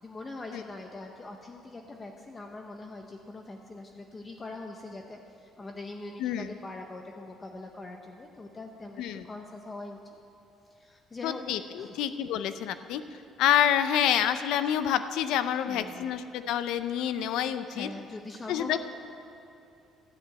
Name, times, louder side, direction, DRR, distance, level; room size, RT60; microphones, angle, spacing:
voice 1, 0.0-10.0 10.7-11.5 11.8-12.0 15.7-16.1 17.7-18.8, left 2 dB, 20° left, 3 dB, 0.7 m, -42 dB
voice 2, 6.2-6.5 9.0-9.3 11.2-13.0 13.4-17.9 18.5-18.8, left 10 dB, 75° left, 11 dB, 0.6 m, -27 dB
12.5 x 7.5 x 8.9 m, 2.9 s
cardioid pair, 175°, 0 cm